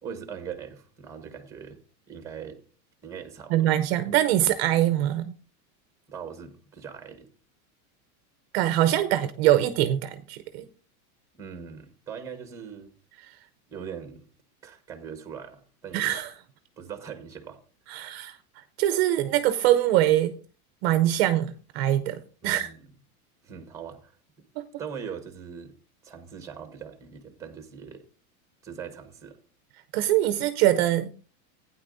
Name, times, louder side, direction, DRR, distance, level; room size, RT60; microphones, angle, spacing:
voice 1, 0.0-1.8 2.1-2.6 3.0-3.7 6.1-7.3 11.4-12.9 13.7-14.2 14.6-16.2 16.8-17.6 17.9-18.1 22.4-22.8 23.4-24.1 24.8-25.7 26.0-28.0 28.6-29.4, right 7 dB, 5° right, 1.2 m, -41 dB
voice 2, 3.5-5.3 8.5-10.7 13.2-13.4 15.9-16.3 17.9-20.4 20.8-22.7 24.6-24.7 29.9-31.1, right 13 dB, 45° right, 0.6 m, -23 dB
15.5 x 9.6 x 2.6 m
supercardioid pair, 170°, 44 cm